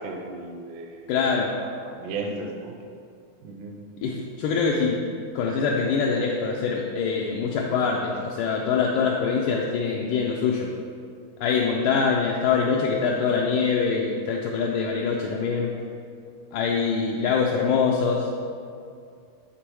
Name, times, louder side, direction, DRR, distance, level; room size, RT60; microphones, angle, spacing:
voice 1, 0.0-1.1 1.6-2.7 3.4-3.8, right 3 dB, 75° right, 2 dB, 2.0 m, -35 dB
voice 2, 1.1-1.5 4.0-5.0 5.3-10.7 11.4-15.7 16.5-18.3, left 5 dB, 85° left, -1 dB, 1.9 m, -24 dB
8.9 x 3.7 x 4.6 m, 2.4 s
omnidirectional pair, 4.2 m